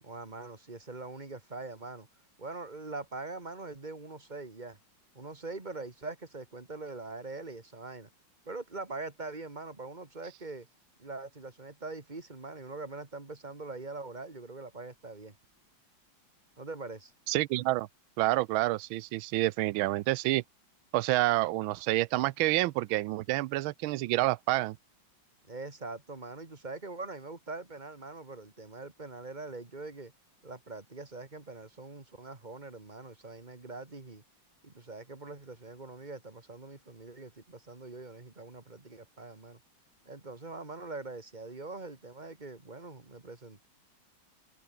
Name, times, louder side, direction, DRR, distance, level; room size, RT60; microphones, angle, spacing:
voice 1, 0.0-2.1 2.4-4.8 5.1-8.1 8.5-10.7 11.0-15.4 16.6-17.1 25.5-30.1 30.4-34.2 34.6-39.6 40.1-43.7, right 3 dB, 20° right, 2.4 m, -43 dB
voice 2, 17.3-17.9 18.2-20.4 20.9-24.8, right 18 dB, 85° right, 1.4 m, -28 dB
omnidirectional pair, 2.2 m